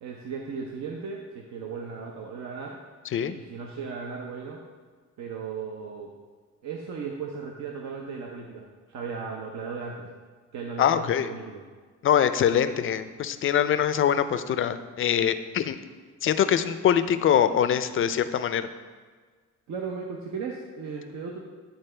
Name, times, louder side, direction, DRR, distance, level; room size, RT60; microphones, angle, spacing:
voice 1, 0.0-2.8 3.3-4.6 5.2-6.1 6.6-10.1 10.5-11.6 19.7-21.4, right 5 dB, 65° right, 0 dB, 0.7 m, -36 dB
voice 2, 10.8-11.3 12.0-15.8 16.2-18.7, left 9 dB, 45° left, 11 dB, 0.4 m, -23 dB
10.5 x 3.8 x 3.3 m, 1.5 s
cardioid pair, 90°, 30 cm